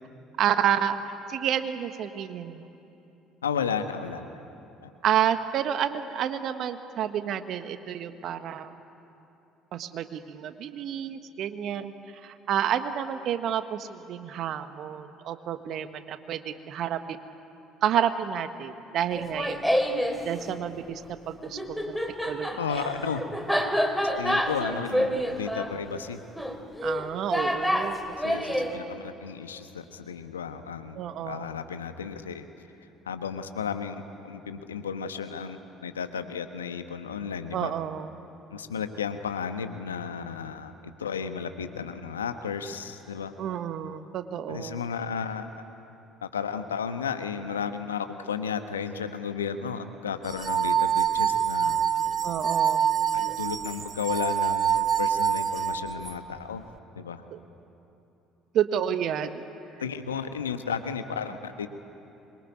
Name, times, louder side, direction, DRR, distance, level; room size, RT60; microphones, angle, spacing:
voice 1, 0.4-2.7 5.0-8.7 9.7-11.9 12.2-17.2 17.8-19.6 20.2-22.0 22.2-22.9 26.8-28.0 28.2-28.9 30.9-31.5 37.5-38.2 43.4-44.8 52.2-52.9 57.3-57.4 58.5-59.5, right 9 dB, 55° right, 10 dB, 1.4 m, -30 dB
voice 2, 3.4-4.3 4.8-4.9 22.6-23.3 24.0-26.2 28.2-32.5 33.1-37.7 38.5-40.7 41.0-43.3 44.5-45.6 46.2-51.9 53.1-56.6 57.0-57.2 59.8-61.7, left 6 dB, 90° left, 8 dB, 1.2 m, -33 dB
Laughter, 19.1-20.2 21.4-28.7, equal, ahead, 3.1 m, -28 dB
sound 1, 50.3-56.1, right 8 dB, 40° right, 0.7 m, -26 dB
26.0 x 23.0 x 9.6 m, 3.0 s
hypercardioid pair, 55°, 0 cm